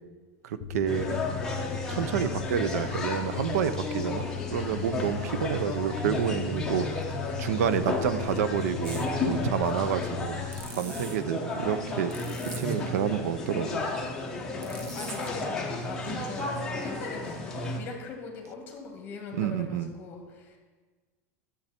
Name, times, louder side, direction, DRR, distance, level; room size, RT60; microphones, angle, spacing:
voice 1, 0.4-1.2 1.9-4.2 4.5-6.9 7.4-10.4 10.7-12.1 12.6-13.8 19.3-19.9, right 9 dB, 85° right, 13 dB, 0.6 m, -29 dB
sound 1, 0.6-10.6, left 10 dB, 50° left, 0.7 m, -37 dB
sound 2, 0.9-17.8, left 2 dB, 5° left, 1.0 m, -33 dB
sound 3, 8.8-9.1 10.5-11.2 12.1-12.8 14.6-15.4, right 4 dB, 25° right, 0.8 m, -43 dB
voice 2, 14.6-20.6, left 5 dB, 25° left, 2 dB, 1.8 m, -41 dB
11.0 x 7.2 x 4.4 m, 1.3 s
supercardioid pair, 165°, 8 cm